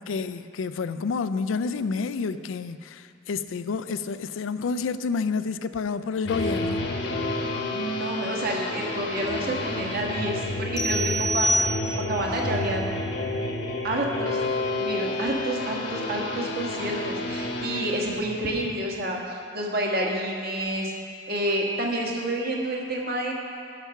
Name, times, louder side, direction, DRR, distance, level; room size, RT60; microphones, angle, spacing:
voice 1, 0.0-6.8, left 4 dB, 90° left, 13 dB, 0.4 m, -29 dB
sound 1, 6.2-18.2, left 2 dB, 60° left, 1.1 m, -30 dB
sound 2, 7.5-18.3, right 2 dB, 70° right, 1.2 m, -47 dB
voice 2, 7.7-11.6 12.1-12.9 13.8-14.4 14.8-20.9 21.3-23.3, right 1 dB, 50° right, -1 dB, 1.4 m, -29 dB
sound 3, 10.8-12.3, right 1 dB, 20° left, 0.7 m, -26 dB
11.5 x 5.9 x 5.7 m, 2.3 s
head